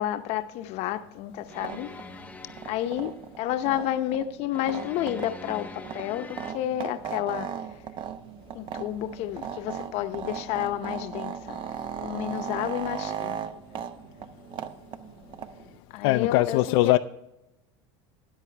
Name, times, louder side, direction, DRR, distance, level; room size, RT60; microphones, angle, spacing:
voice 1, 0.0-1.9 2.6-7.5 8.5-11.6 12.0-13.4 15.9-16.9, left 12 dB, 55° left, 0.8 m, -30 dB
sound 1, 1.4-15.8, right 8 dB, 40° right, 0.7 m, -38 dB
sound 2, 1.5-3.1 4.5-6.5, left 3 dB, 10° left, 0.6 m, -44 dB
voice 2, 16.0-17.0, left 17 dB, 75° left, 0.4 m, -21 dB
13.5 x 9.7 x 3.3 m
supercardioid pair, 125°, 13 cm